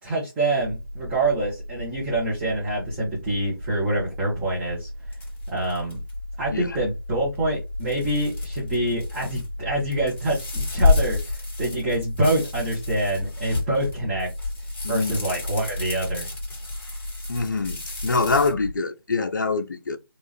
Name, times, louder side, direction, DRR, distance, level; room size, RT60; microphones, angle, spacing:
voice 1, 0.0-4.9 5.5-6.0 6.4-14.3 14.9-16.3, right 1 dB, 10° right, 0.9 m, -26 dB
sound 1, 0.6-18.7, left 1 dB, 70° right, 0.8 m, -35 dB
sound 2, 5.1-6.1 7.8-9.4 9.8-18.5, left 4 dB, 30° left, 1.9 m, -29 dB
voice 2, 14.8-15.2 17.3-20.0, left 4 dB, 55° left, 0.6 m, -25 dB
3.5 x 2.4 x 3.2 m
figure-of-eight pair, 155°, 12 cm